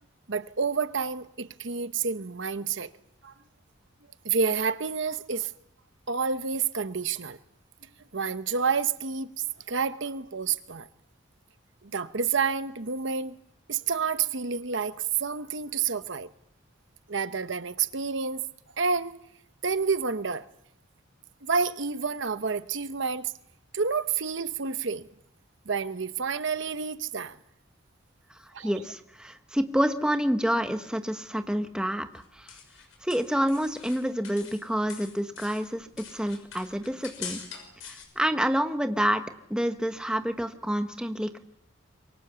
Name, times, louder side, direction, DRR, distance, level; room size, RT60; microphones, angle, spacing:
voice 1, 0.3-2.9 3.2-3.3 4.2-5.5 6.1-7.4 7.8-10.9 11.8-13.4 13.7-16.3 17.1-18.4 18.8-19.2 19.6-20.5 21.5-23.3 23.7-25.1 25.7-27.4 28.5-28.7, right 5 dB, 65° right, 1.0 m, -29 dB
voice 2, 28.6-32.5 33.0-37.4 37.8-39.2 39.5-41.4, equal, 5° right, 1.3 m, -28 dB
sound 1, 32.2-34.6 34.9-38.1, left 7 dB, 75° left, 6.3 m, -44 dB
27.0 x 24.0 x 7.0 m
head